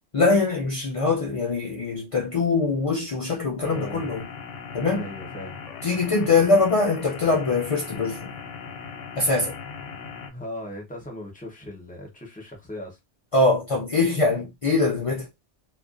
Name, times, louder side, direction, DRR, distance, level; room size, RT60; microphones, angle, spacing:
voice 1, 0.1-4.3 4.7-5.1 5.8-8.3 9.1-9.5 13.3-15.3, left 3 dB, 60° left, 0.3 m, -23 dB
sound 1, 3.6-10.3, left 6 dB, 85° left, 0.9 m, -39 dB
voice 2, 3.7-4.0 5.0-5.6 6.3-6.5 10.3-13.0, left 1 dB, 10° left, 0.6 m, -38 dB
2.4 x 2.1 x 2.4 m
omnidirectional pair, 1.2 m